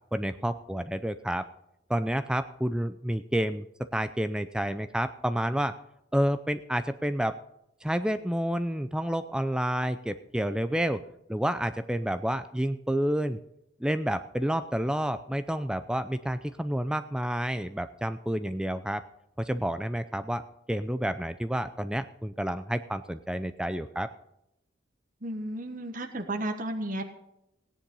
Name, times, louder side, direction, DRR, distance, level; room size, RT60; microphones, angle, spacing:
voice 1, 0.1-1.5 1.9-3.6 3.9-5.7 6.1-7.4 7.8-11.0 11.3-13.4 13.8-19.0 19.4-20.4 20.7-24.1, equal, 5° right, 10 dB, 0.5 m, -29 dB
voice 2, 25.2-27.1, right 1 dB, 45° right, 4 dB, 1.4 m, -33 dB
17.5 x 10.0 x 5.4 m, 0.84 s
head